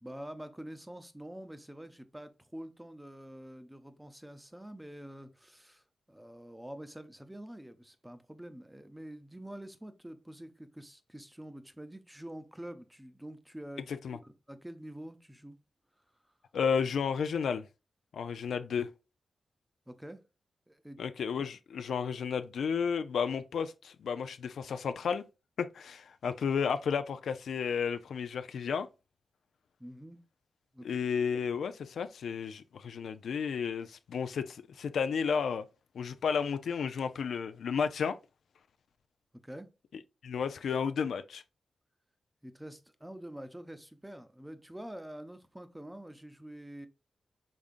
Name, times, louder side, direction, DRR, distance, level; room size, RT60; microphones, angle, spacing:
voice 1, 0.0-13.8 14.2-15.6 19.9-20.2 20.7-21.0 29.8-30.2 30.7-30.9 39.4-39.7 42.4-46.9, right 1 dB, 10° right, 0.6 m, -46 dB
voice 2, 16.5-17.7 18.1-18.9 21.0-25.2 25.6-28.9 30.8-35.7 35.9-38.2 40.2-41.4, left 6 dB, 90° left, 0.4 m, -32 dB
5.1 x 3.6 x 2.5 m
cardioid pair, 90°, 0 cm